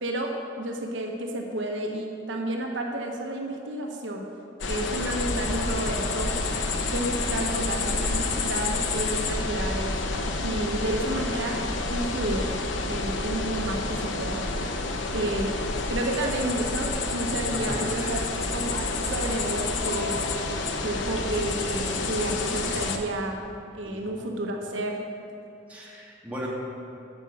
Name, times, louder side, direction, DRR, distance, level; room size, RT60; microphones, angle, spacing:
voice 1, 0.0-4.3 4.7-6.3 6.8-10.0 10.4-11.6 11.9-12.5 12.8-14.5 15.1-15.5 15.9-18.2 18.5-23.4 23.7-25.0, right 1 dB, 85° right, 2 dB, 1.1 m, -31 dB
sound 1, 4.6-23.0, left 3 dB, 85° left, 0.8 m, -29 dB
voice 2, 17.5-18.2 23.8-24.2 25.7-26.5, equal, 10° right, -6 dB, 1.8 m, -38 dB
8.9 x 6.1 x 7.1 m, 2.7 s
head